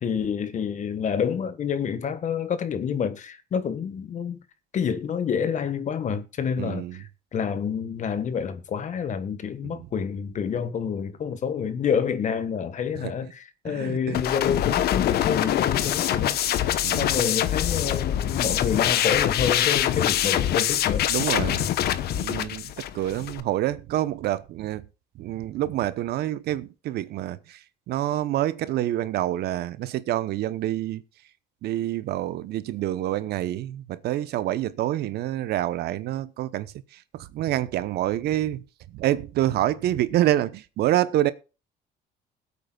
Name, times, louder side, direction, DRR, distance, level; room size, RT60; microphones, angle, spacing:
voice 1, 0.0-4.4 4.7-16.6 17.0-21.1 22.3-22.5, left 7 dB, 45° left, 1.5 m, -28 dB
voice 2, 6.6-6.9 13.0-13.1 13.7-14.2 16.8-17.2 21.1-21.6 22.1-22.6 22.9-24.8 25.2-27.4 27.9-31.0 31.6-36.7 37.1-38.6 38.9-41.3, right 13 dB, 70° right, 0.9 m, -27 dB
sound 1, 14.1-23.4, left 11 dB, 70° left, 1.0 m, -24 dB
21.0 x 8.4 x 2.4 m
cardioid pair, 110°, 17 cm